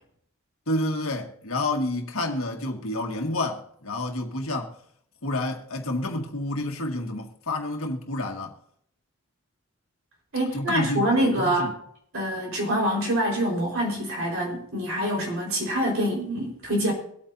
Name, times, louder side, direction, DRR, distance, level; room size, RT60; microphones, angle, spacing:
voice 1, 0.7-4.7 5.2-8.6 10.5-11.7, left 1 dB, 75° left, 1.8 m, -29 dB
voice 2, 10.3-11.7 12.1-16.9, equal, 65° right, 4.6 m, -25 dB
23.5 x 8.5 x 2.7 m
head